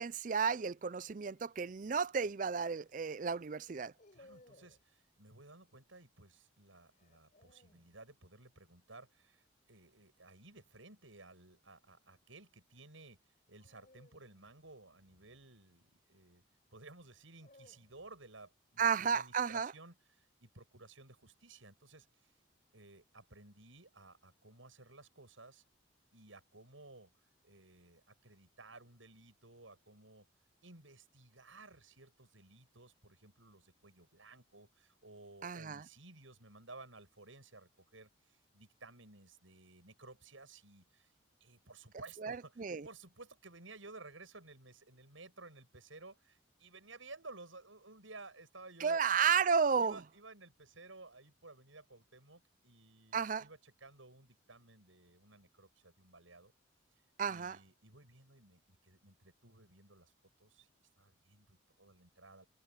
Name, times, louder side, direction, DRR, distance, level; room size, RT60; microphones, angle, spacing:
voice 1, 0.0-3.9 18.8-19.7 35.4-35.8 42.2-42.9 48.8-50.0 53.1-53.4 57.2-57.6, right 6 dB, 40° right, 0.4 m, -33 dB
sound 1, 1.7-2.1 3.6-4.9 7.0-7.9 10.4-10.8 13.6-15.9 17.0-18.3, left 1 dB, 40° left, 4.9 m, -65 dB
voice 2, 4.1-16.4 16.7-22.3 22.7-25.6 26.1-27.1 27.4-30.3 30.6-41.1 41.4-49.0 49.8-56.5 57.3-60.1 60.4-60.7 61.0-62.5, right 3 dB, 80° right, 7.7 m, -56 dB
head